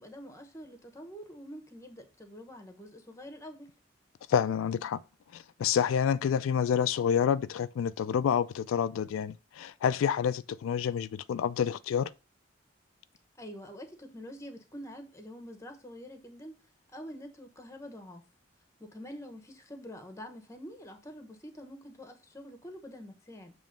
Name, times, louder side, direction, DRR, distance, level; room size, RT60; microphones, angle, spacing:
voice 1, 0.0-3.7 13.4-16.6 16.9-18.2 18.8-23.5, equal, 15° left, 1.0 m, -46 dB
voice 2, 4.3-5.0 5.3-12.1, left 8 dB, 80° left, 0.3 m, -28 dB
7.3 x 3.1 x 5.1 m
head